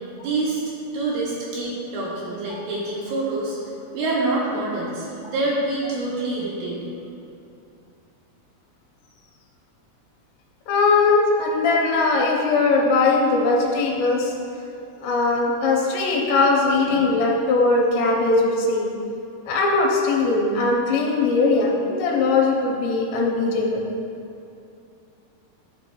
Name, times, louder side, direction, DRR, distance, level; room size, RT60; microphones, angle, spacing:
voice 1, 0.1-3.6 3.9-6.9, right 2 dB, 75° right, -5 dB, 2.5 m, -26 dB
voice 2, 10.7-14.3 15.0-18.9 19.5-23.9, left 3 dB, 80° left, -1 dB, 3.0 m, -20 dB
12.0 x 5.3 x 2.3 m, 2.6 s
omnidirectional pair, 5.0 m